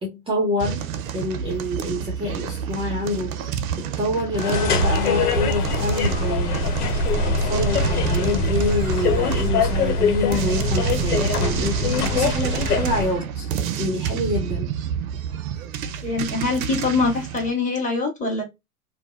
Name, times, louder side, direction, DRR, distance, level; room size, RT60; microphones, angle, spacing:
voice 1, 0.0-6.6 7.1-14.8, left 1 dB, 10° right, 0.6 m, -27 dB
sound 1, 0.6-17.5, right 8 dB, 65° right, 0.6 m, -29 dB
sound 2, 4.3-13.2, left 3 dB, 85° left, 0.9 m, -23 dB
voice 2, 16.0-18.4, left 3 dB, 15° left, 1.4 m, -23 dB
2.6 x 2.1 x 2.4 m
hypercardioid pair, 115°, 44 cm